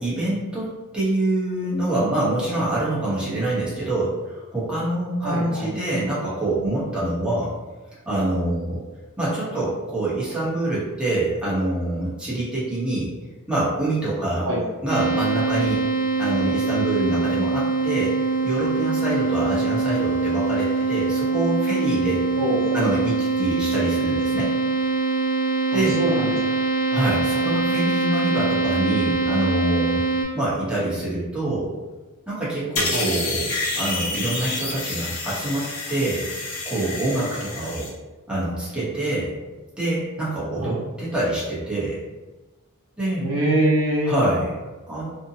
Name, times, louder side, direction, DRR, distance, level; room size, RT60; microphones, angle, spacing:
voice 1, 0.0-7.5 8.0-8.8 9.2-13.1 13.5-14.5 14.8-15.8 16.2-22.2 22.7-24.5 25.7-26.0 26.9-30.0 30.3-31.7 32.3-36.3 36.7-37.9 38.3-39.3 39.8-42.0 43.0-43.2 44.0-45.1, right 1 dB, 5° right, -9 dB, 0.8 m, -25 dB
voice 2, 5.2-5.7 14.4-14.6 22.4-22.8 26.0-26.3 26.9-27.0 32.9-33.0 40.6-40.7 43.2-44.1, right 1 dB, 65° right, -5 dB, 0.7 m, -23 dB
sound 1, 14.9-30.2, right 3 dB, 40° left, 0.8 m, -23 dB
sound 2, 32.8-37.9, left 2 dB, 80° left, 0.8 m, -29 dB
2.6 x 2.1 x 2.7 m, 1.2 s
head